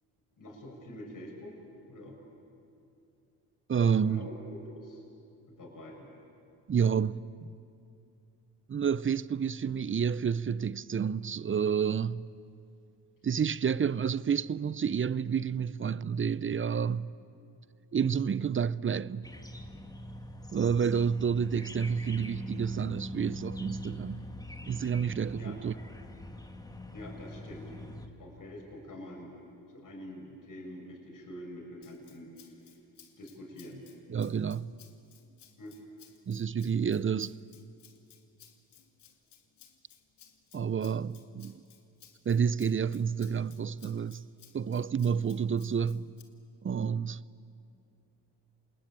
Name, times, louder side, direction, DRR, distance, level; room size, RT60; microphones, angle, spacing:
voice 1, 0.4-1.6 1.9-2.2 4.0-5.0 5.6-6.1 25.4-25.6 26.9-27.7 28.2-29.3 29.7-32.3 33.2-33.8 35.6-35.7, equal, 50° left, 6.7 m, -45 dB
voice 2, 3.7-4.3 6.7-7.5 8.7-12.2 13.2-17.1 17.9-19.3 20.5-24.3 24.7-25.7 34.1-34.7 36.3-37.4 40.5-41.6 42.3-44.2 44.5-46.1 46.6-47.2, right 7 dB, 30° right, 0.6 m, -29 dB
sound 1, 19.2-28.1, left 1 dB, 10° left, 2.3 m, -43 dB
Rattle (instrument), 31.8-46.2, left 9 dB, 70° left, 2.6 m, -59 dB
27.5 x 20.5 x 8.9 m
supercardioid pair, 70°, 41 cm